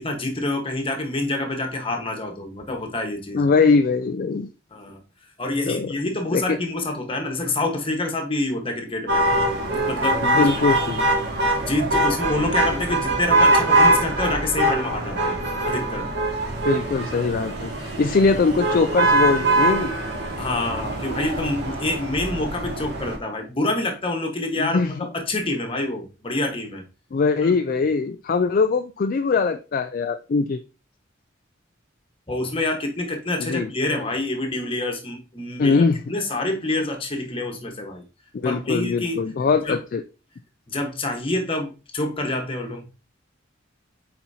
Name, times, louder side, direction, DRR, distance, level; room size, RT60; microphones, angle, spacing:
voice 1, 0.0-3.4 4.7-5.0 5.4-9.2 9.7-10.5 11.5-15.4 15.6-16.1 20.4-26.8 32.3-35.8 36.1-38.0 38.4-39.2 39.6-39.8 40.7-42.8, left 2 dB, 25° left, 3 dB, 1.3 m, -27 dB
voice 2, 3.3-4.5 5.7-5.9 6.3-6.6 10.2-11.1 16.6-19.9 24.6-25.1 27.1-30.6 33.4-33.7 35.6-36.0 38.3-40.0, left 4 dB, 45° left, 8 dB, 0.3 m, -21 dB
sound 1, 9.1-23.2, right 1 dB, 60° right, 1.9 m, -22 dB
8.1 x 4.4 x 2.8 m, 0.32 s
head